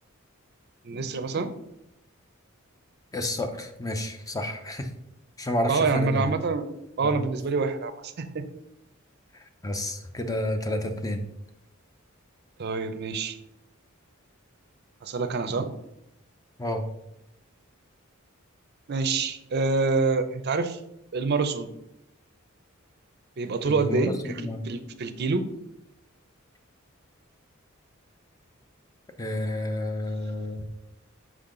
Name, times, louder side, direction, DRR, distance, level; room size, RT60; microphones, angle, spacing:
voice 1, 0.8-1.5 5.7-6.7 7.0-8.4 12.6-13.4 15.0-15.7 18.9-20.8 21.1-21.7 23.4-25.4, right 4 dB, 50° right, 9 dB, 0.5 m, -26 dB
voice 2, 3.1-4.9 5.4-6.3 7.0-7.2 9.6-11.2 16.6-16.8 23.6-24.6 29.2-30.6, left 1 dB, 15° left, 7 dB, 0.5 m, -30 dB
5.5 x 5.0 x 3.7 m, 0.83 s
head